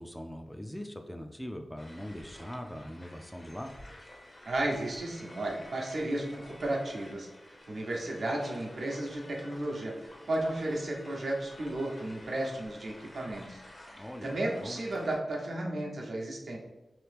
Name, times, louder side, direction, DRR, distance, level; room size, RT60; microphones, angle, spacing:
voice 1, 0.0-3.7 14.0-14.3 14.6-14.8, equal, 10° left, 5 dB, 0.3 m, -41 dB
sound 1, 1.8-15.2, left 1 dB, 40° left, 0.7 m, -51 dB
voice 2, 4.4-7.3 7.7-13.6 13.9-16.6, right 1 dB, 80° right, -1 dB, 0.7 m, -34 dB
2.9 x 2.8 x 3.4 m, 1.0 s
cardioid pair, 60°, 0 cm